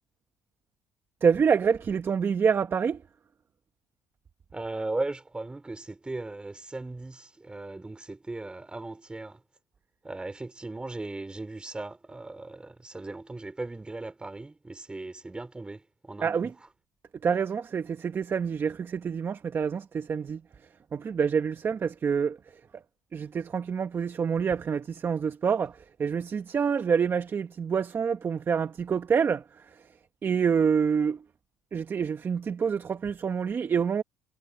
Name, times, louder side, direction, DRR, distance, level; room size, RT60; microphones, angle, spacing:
voice 1, 1.2-3.0 16.2-16.5 17.2-22.8 23.1-29.9 30.2-31.2 31.7-34.0, right 6 dB, 35° right, 1.3 m, -27 dB
voice 2, 4.5-9.4 10.0-16.3, right 2 dB, 15° right, 3.4 m, -37 dB
supercardioid pair, 90°, 6 cm